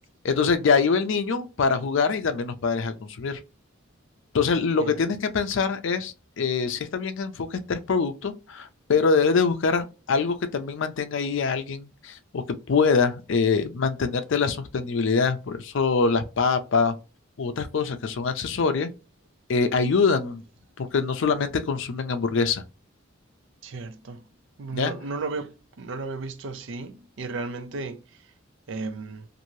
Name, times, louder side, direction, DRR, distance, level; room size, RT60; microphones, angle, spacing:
voice 1, 0.2-3.4 4.3-16.9 17.4-18.9 19.5-20.4 20.8-22.6 24.7-24.9, left 5 dB, 65° left, 0.5 m, -24 dB
voice 2, 23.6-24.2 24.6-28.0 28.7-29.3, right 3 dB, 65° right, 0.5 m, -34 dB
2.7 x 2.6 x 3.0 m
head